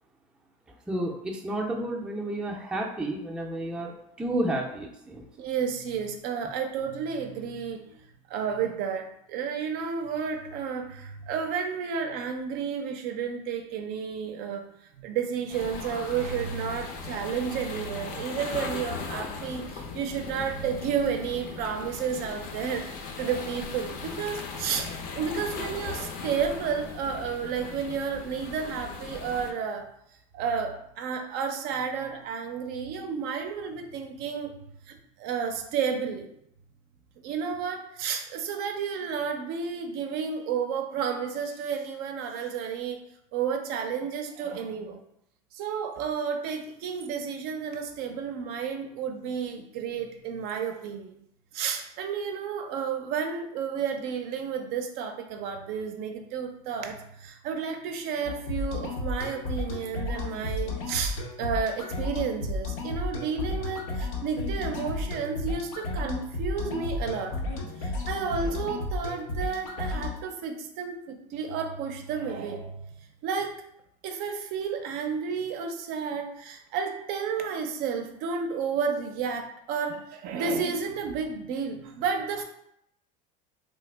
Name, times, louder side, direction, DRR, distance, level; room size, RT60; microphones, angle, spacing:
voice 1, 0.9-5.3, right 1 dB, 5° right, -1 dB, 0.4 m, -31 dB
voice 2, 5.4-14.7 15.0-24.9 25.1-29.9 30.3-34.5 34.9-36.3 37.2-43.0 43.3-45.0 45.5-51.1 51.5-67.4 67.8-72.8 73.2-73.6 74.0-82.4, right 6 dB, 60° right, 6 dB, 0.5 m, -31 dB
sound 1, 15.5-29.5, left 5 dB, 50° left, 0.5 m, -38 dB
sound 2, 58.3-70.2, left 2 dB, 85° left, 0.7 m, -33 dB
3.2 x 2.0 x 3.2 m, 0.75 s
supercardioid pair, 120°, 18 cm